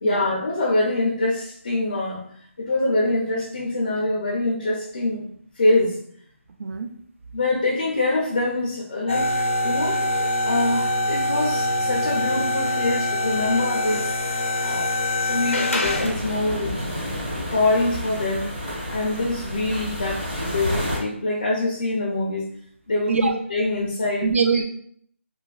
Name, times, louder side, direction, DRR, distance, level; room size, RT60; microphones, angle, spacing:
voice 1, 0.0-2.2 2.6-5.2 5.6-6.0 7.3-9.3 9.6-14.1 14.6-14.9 15.2-16.8 17.5-18.5 18.9-20.2 20.5-22.5 22.9-24.3, left 2 dB, 35° left, -2 dB, 0.5 m, -24 dB
voice 2, 6.6-6.9 23.1-23.4 24.2-24.6, right 5 dB, 80° right, 6 dB, 0.3 m, -22 dB
sound 1, 9.1-16.3, left 1 dB, 90° left, 0.7 m, -24 dB
sound 2, 15.8-21.0, left 1 dB, 40° right, 1.2 m, -30 dB
3.2 x 2.1 x 2.3 m, 0.64 s
hypercardioid pair, 175°, 7 cm